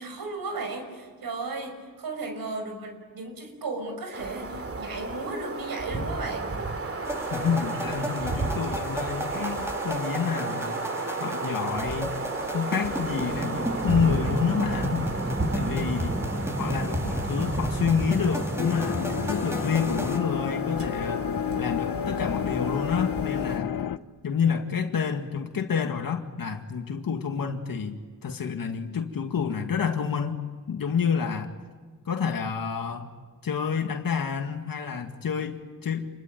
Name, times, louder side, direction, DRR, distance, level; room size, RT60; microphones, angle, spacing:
voice 1, 0.0-6.5, right 3 dB, 90° right, 5 dB, 5.8 m, -35 dB
sound 1, 4.1-23.6, right 3 dB, 40° right, 3.0 m, -33 dB
sound 2, 7.0-20.2, equal, 5° right, 2.5 m, -33 dB
voice 2, 7.3-10.8 11.2-12.2 12.5-15.1 15.5-16.2 16.6-21.3 21.6-23.7 24.2-31.5 32.1-33.1 33.4-36.1, left 6 dB, 70° left, 5 dB, 1.9 m, -29 dB
sound 3, 18.6-24.0, left 9 dB, 90° left, 0.8 m, -30 dB
28.5 x 22.5 x 9.2 m, 1.5 s
wide cardioid pair, 115°, 35 cm